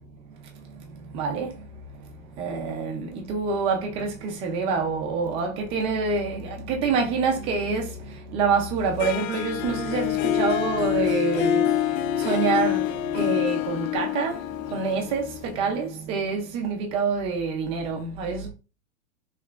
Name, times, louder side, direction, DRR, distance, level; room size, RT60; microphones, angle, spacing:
voice 1, 0.3-18.5, right 5 dB, 15° right, 0.4 m, -27 dB
Harp, 9.0-15.9, left 11 dB, 70° left, 0.5 m, -26 dB
5.5 x 2.9 x 2.4 m
supercardioid pair, 160°, 43 cm